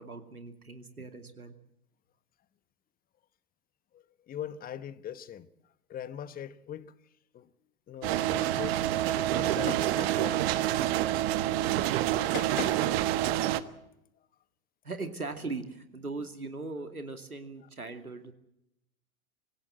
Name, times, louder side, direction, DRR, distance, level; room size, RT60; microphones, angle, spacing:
voice 1, 0.0-1.6 14.8-18.3, right 3 dB, 90° right, 2.6 m, -39 dB
voice 2, 3.9-5.5 5.9-6.9 7.3-7.5 7.9-8.8 9.1-10.6 11.0-11.2 11.8-12.2 13.0-13.3 13.6-13.7, left 9 dB, 20° left, 1.1 m, -42 dB
sound 1, 8.0-13.0, left 7 dB, 75° left, 1.7 m, -45 dB
sound 2, 8.0-13.6, right 13 dB, 45° right, 1.3 m, -27 dB
26.0 x 16.0 x 7.8 m
figure-of-eight pair, 100°, 43 cm